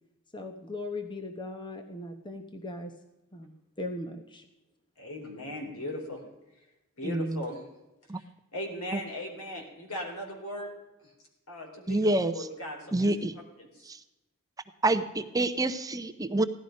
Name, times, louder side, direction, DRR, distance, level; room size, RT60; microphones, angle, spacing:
voice 1, 0.3-2.9 3.3-3.5 3.8-4.4, left 2 dB, 20° left, 5 dB, 0.9 m, -38 dB
voice 2, 5.0-6.2 7.0-7.7 8.2-10.7 11.5-13.2 13.6-13.9, left 1 dB, 70° left, 2 dB, 3.9 m, -38 dB
voice 3, 7.0-7.4 8.1-8.2 11.9-12.3 12.9-13.3 13.9-14.0 14.8-16.4, right 2 dB, 15° right, 10 dB, 0.6 m, -27 dB
16.5 x 12.0 x 5.2 m, 1.0 s
head